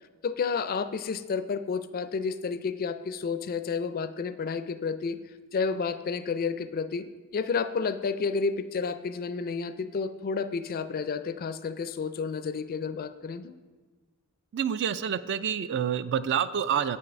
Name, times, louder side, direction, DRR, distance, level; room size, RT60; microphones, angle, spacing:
voice 1, 0.2-5.2 5.5-7.1 7.3-13.6, left 5 dB, 45° left, 12 dB, 0.4 m, -31 dB
voice 2, 14.5-17.0, right 8 dB, 55° right, 15 dB, 0.3 m, -28 dB
8.0 x 5.6 x 5.2 m, 1.3 s
head